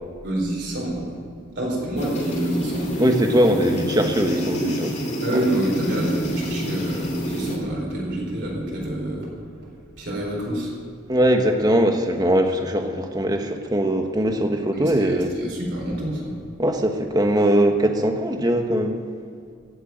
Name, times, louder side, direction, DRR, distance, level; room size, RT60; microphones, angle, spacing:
voice 1, 0.2-1.1 1.5-2.9 5.2-9.3 9.6-10.7 14.7-16.4, right 1 dB, 60° right, -3 dB, 4.4 m, -27 dB
sound 1, 2.0-7.6, equal, 35° left, 2.4 m, -28 dB
voice 2, 3.0-5.0 5.3-5.4 11.1-15.3 16.6-19.0, right 1 dB, 20° right, 4 dB, 1.2 m, -21 dB
15.5 x 8.0 x 9.0 m, 2.2 s
head